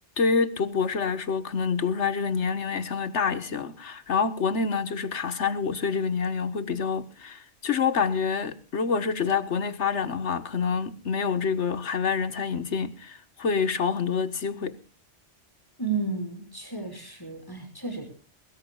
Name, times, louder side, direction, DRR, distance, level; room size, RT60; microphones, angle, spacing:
voice 1, 0.2-14.8, left 5 dB, 85° left, 1.7 m, -27 dB
voice 2, 15.8-18.1, right 4 dB, 20° left, 6.0 m, -32 dB
22.5 x 20.0 x 2.4 m
omnidirectional pair, 1.1 m